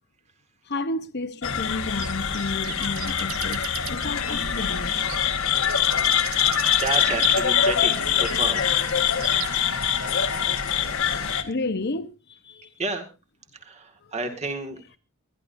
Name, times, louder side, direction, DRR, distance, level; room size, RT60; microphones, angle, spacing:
voice 1, 0.7-5.0 11.4-12.7, left 2 dB, 50° left, 1.1 m, -31 dB
sound 1, 1.4-11.4, left 8 dB, 85° left, 1.6 m, -24 dB
sound 2, 2.0-9.8, right 10 dB, 80° right, 1.2 m, -37 dB
voice 2, 6.3-8.7 12.8-13.1 13.5-14.8, right 3 dB, 30° right, 2.1 m, -31 dB
24.5 x 11.5 x 2.7 m
head